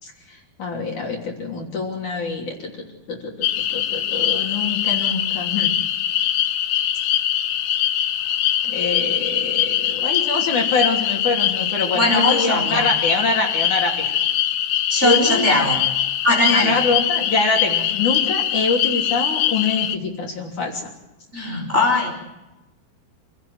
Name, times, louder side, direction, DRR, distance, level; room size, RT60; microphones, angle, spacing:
voice 1, 0.0-2.7 3.1-5.7 8.6-14.1 15.0-15.7 16.5-20.9, left 3 dB, 50° left, 0 dB, 4.4 m, -25 dB
sound 1, 3.4-20.0, left 11 dB, 70° left, 1.9 m, -22 dB
voice 2, 11.9-12.8 14.9-15.8 16.2-16.7 21.3-22.1, left 1 dB, 15° right, 0 dB, 4.3 m, -20 dB
28.0 x 17.5 x 7.9 m, 0.99 s
omnidirectional pair, 4.7 m